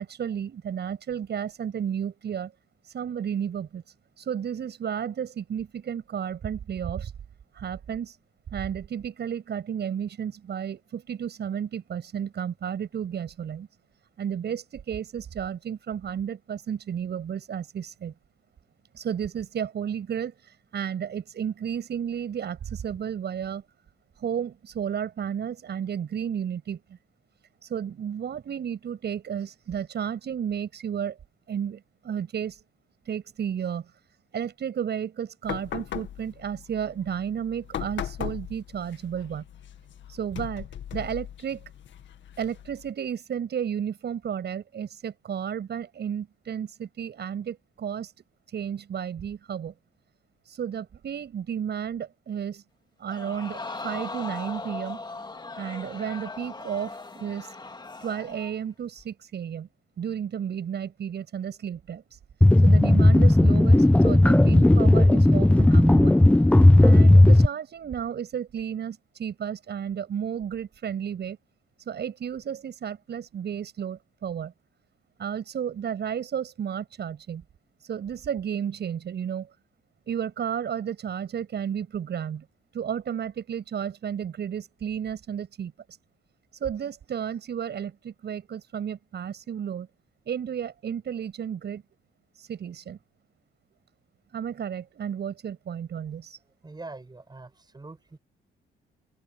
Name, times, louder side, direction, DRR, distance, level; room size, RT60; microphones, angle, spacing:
voice 1, 0.0-2.5 2.8-3.8 4.2-7.1 7.5-8.2 8.5-13.7 14.2-18.1 18.9-23.6 24.2-27.0 27.6-31.2 31.5-32.6 33.1-33.9 34.3-39.4 40.1-40.7 40.9-41.6 42.4-48.1 48.5-49.7 50.5-52.6 53.0-55.0 55.6-57.6 58.0-59.7 60.0-62.2 62.6-66.2 66.8-71.4 71.9-74.5 75.2-77.4 77.8-79.5 80.1-82.4 82.7-85.7 86.6-89.9 90.3-91.8 92.4-93.0 94.3-96.4, right 8 dB, 60° right, 7.7 m, -32 dB
sound 1, 35.4-42.9, left 10 dB, 70° left, 2.1 m, -39 dB
Crowd, 53.1-58.6 59.0-59.1, left 3 dB, 20° left, 2.8 m, -38 dB
sound 2, 62.4-67.5, left 1 dB, 5° left, 0.7 m, -15 dB
voice 2, 96.6-98.2, right 3 dB, 20° right, 7.3 m, -43 dB
open air
cardioid pair, 90°, 20 cm